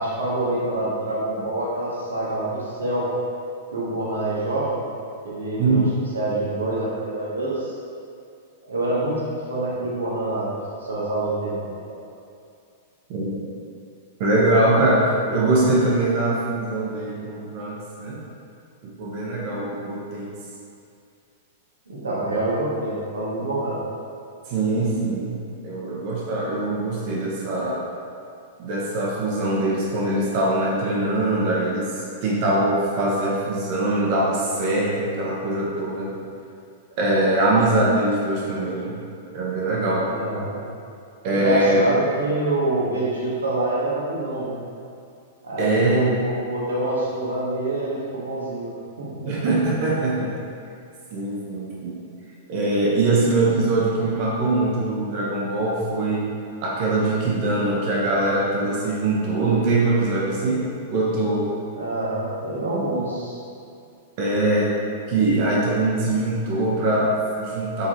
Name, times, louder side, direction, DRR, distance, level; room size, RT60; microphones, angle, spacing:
voice 1, 0.0-3.1 3.7-4.8 5.2-5.8 6.1-7.7 8.7-9.2 9.5-10.5 10.8-11.6 11.9-12.0 15.2-15.3 21.9-23.8 40.1-40.6 41.3-44.6 45.4-48.7 49.0-49.2 61.8-63.4, right 2 dB, 80° right, -6 dB, 1.1 m, -26 dB
voice 2, 13.1-13.4 14.2-18.2 18.8-20.3 24.5-27.8 28.6-36.1 37.0-39.0 39.3-40.1 41.2-41.8 45.6-46.1 49.2-50.3 51.1-52.0 52.5-56.3 56.6-60.6 60.9-61.5 64.2-64.7 65.1-67.9, right 2 dB, 50° right, -5 dB, 1.1 m, -22 dB
3.8 x 3.7 x 2.9 m, 2.5 s
hypercardioid pair, 105°, 0 cm